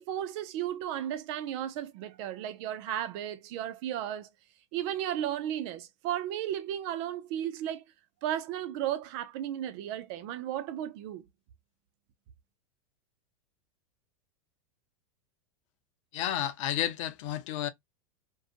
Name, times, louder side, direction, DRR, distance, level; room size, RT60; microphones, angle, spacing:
voice 1, 0.0-4.3 4.7-7.8 8.2-11.2, right 11 dB, 55° right, 0.6 m, -34 dB
voice 2, 16.1-17.7, left 11 dB, 65° left, 0.6 m, -31 dB
2.5 x 2.3 x 2.4 m
hypercardioid pair, 115°, 17 cm